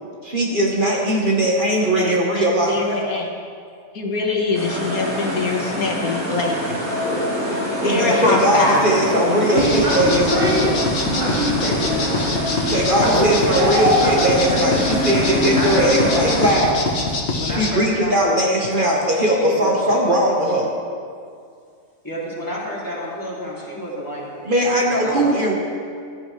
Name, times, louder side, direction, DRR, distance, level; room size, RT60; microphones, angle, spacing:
voice 1, 0.2-2.8 7.8-10.5 12.6-16.9 17.4-20.7 24.4-25.5, right 1 dB, 40° right, -2 dB, 1.5 m, -19 dB
voice 2, 1.9-3.3 3.9-6.8 7.8-8.8, left 3 dB, 90° left, 0 dB, 2.1 m, -23 dB
sound 1, 4.5-16.5, equal, 85° right, 3.9 m, -24 dB
voice 3, 9.3-13.0, equal, 60° right, -8 dB, 2.8 m, -24 dB
sound 2, 9.6-17.7, left 3 dB, 50° left, 1.6 m, -24 dB
voice 4, 13.0-13.7 14.0-14.2 14.5-14.6 15.3-15.9 17.3-18.3 18.7-20.2 22.0-25.3, equal, 15° left, -7 dB, 2.9 m, -28 dB
16.0 x 13.0 x 3.3 m, 2.2 s
omnidirectional pair, 1.5 m